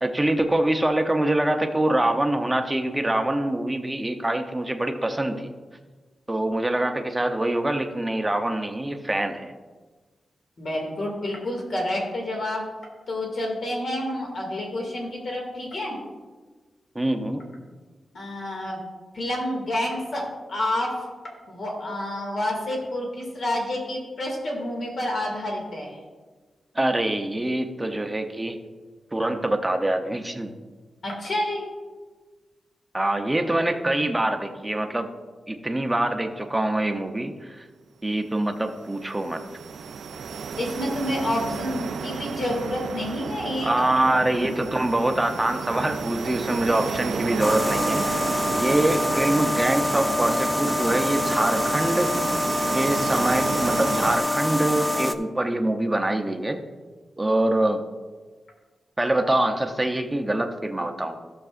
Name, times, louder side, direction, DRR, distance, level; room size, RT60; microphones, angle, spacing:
voice 1, 0.0-5.5 6.3-9.5 16.9-17.5 26.7-28.6 29.1-30.5 32.9-35.1 35.5-37.7 38.0-39.4 43.6-48.0 48.5-52.2 52.7-56.6 57.2-57.8 59.0-61.2, right 1 dB, 15° right, 5 dB, 0.7 m, -24 dB
voice 2, 10.6-12.6 13.1-16.0 18.1-18.8 19.1-21.0 21.5-26.0 31.0-31.6 40.6-43.8, left 1 dB, 60° left, -1 dB, 2.2 m, -29 dB
sound 1, 38.5-54.2, right 6 dB, 85° right, 0.4 m, -32 dB
sound 2, 47.4-55.1, left 1 dB, 15° left, 0.4 m, -25 dB
14.5 x 6.7 x 2.5 m, 1.4 s
wide cardioid pair, 140°, 0 cm